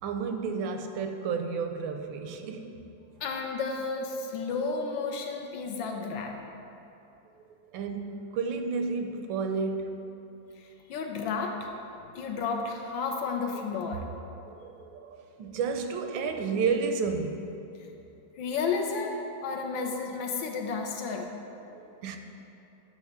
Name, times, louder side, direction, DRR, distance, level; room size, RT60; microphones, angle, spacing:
voice 1, 0.0-2.8 7.7-10.0 14.5-17.5 21.7-22.2, right 5 dB, 85° right, 6 dB, 1.4 m, -31 dB
voice 2, 3.2-6.3 10.6-11.7 12.1-14.1 17.8-17.9 18.4-21.3, left 4 dB, 80° left, 2 dB, 1.5 m, -32 dB
9.1 x 3.1 x 6.4 m, 2.9 s
omnidirectional pair, 2.1 m